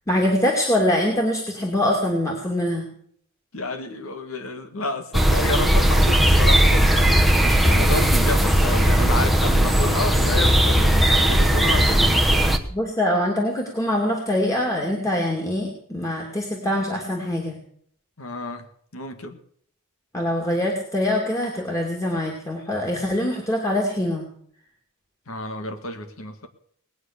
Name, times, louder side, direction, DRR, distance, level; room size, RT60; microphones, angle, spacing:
voice 1, 0.1-2.9 12.7-17.6 20.1-24.3, left 1 dB, 15° left, -1 dB, 2.5 m, -24 dB
voice 2, 3.5-12.4 18.2-18.7 18.9-19.4 25.3-26.5, left 2 dB, 70° left, 8 dB, 1.9 m, -30 dB
sound 1, 5.1-12.6, right 1 dB, ahead, 1.1 m, -17 dB
19.5 x 9.5 x 6.7 m, 0.62 s
head